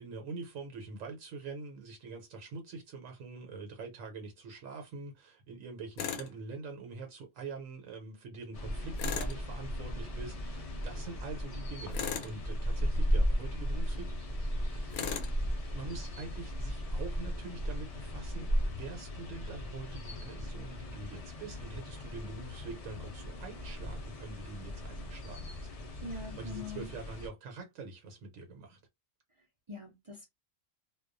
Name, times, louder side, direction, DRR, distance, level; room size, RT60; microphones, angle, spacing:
voice 1, 0.0-14.2 14.5-15.1 15.7-25.7 26.1-28.8, right 4 dB, 75° right, 1.0 m, -45 dB
Tools, 6.0-6.3 9.0-9.4 11.9-12.4 14.9-15.3, left 7 dB, 85° left, 1.1 m, -36 dB
sound 1, 8.5-27.3, equal, 65° left, 0.3 m, -36 dB
voice 2, 26.0-26.9 29.7-30.3, left 3 dB, 50° right, 0.3 m, -42 dB
2.3 x 2.2 x 2.4 m
omnidirectional pair, 1.4 m